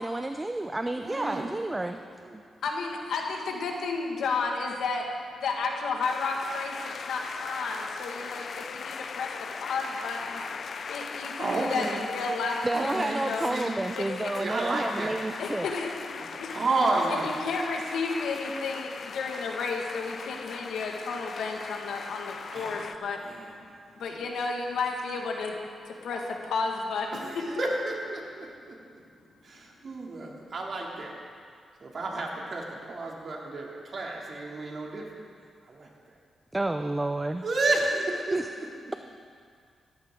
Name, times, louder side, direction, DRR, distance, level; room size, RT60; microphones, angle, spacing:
voice 1, 0.0-2.0 2.3-2.4 12.6-15.7 36.5-37.4 38.3-38.4, right 2 dB, 15° right, 7 dB, 0.5 m, -30 dB
voice 2, 1.0-1.5 1.8-2.4 11.4-12.0 12.7-13.8 14.4-15.2 16.3-17.4 22.5-22.9 23.2-23.5 27.1-28.8 29.4-31.1 31.8-35.1 35.6-35.9 37.4-38.4, right 2 dB, 50° right, -2 dB, 2.7 m, -31 dB
voice 3, 2.6-5.1 5.4-9.3 9.5-10.4 10.9-13.5 13.9-14.3 15.4-16.1 16.4-16.5 17.1-23.2 24.0-25.5 25.9-27.2, left 4 dB, 90° left, 1 dB, 1.8 m, -32 dB
sound 1, 6.0-23.0, left 5 dB, 55° left, 0.4 m, -39 dB
17.5 x 14.0 x 3.8 m, 2.2 s
cardioid pair, 85°, 0 cm